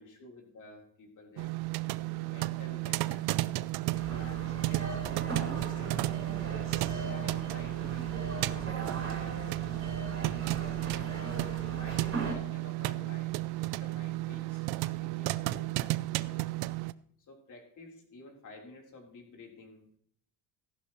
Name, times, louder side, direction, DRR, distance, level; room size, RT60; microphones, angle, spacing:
voice 1, 0.0-1.5 2.0-3.2 3.9-4.9 5.2-6.1 6.7-8.2 8.5-9.4 10.4-11.2 11.6-13.3 13.6-15.7 16.2-16.4 17.3-20.0, left 2 dB, 45° left, 1 dB, 3.7 m, -51 dB
sound 1, 1.4-16.9, right 18 dB, 65° right, 0.6 m, -33 dB
sound 2, 3.9-12.4, right 2 dB, 30° right, 3.6 m, -39 dB
15.0 x 11.5 x 3.0 m, 0.65 s
cardioid pair, 130°, 41 cm